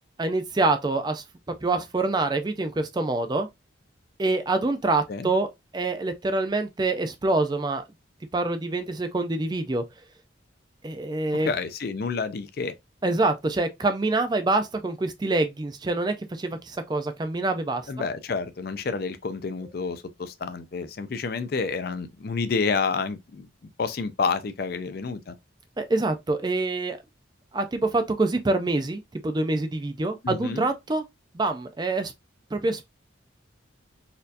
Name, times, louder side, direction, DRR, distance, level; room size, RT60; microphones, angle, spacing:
voice 1, 0.2-1.2 1.6-3.5 4.2-5.5 5.7-7.8 8.3-9.8 10.8-11.5 13.0-18.1 25.8-27.0 27.5-31.0 31.3-32.1 32.5-32.9, right 2 dB, 20° right, 0.4 m, -26 dB
voice 2, 11.4-12.7 17.9-23.5 23.8-25.3 30.2-30.7, left 4 dB, 50° left, 0.4 m, -29 dB
4.2 x 2.7 x 2.5 m
head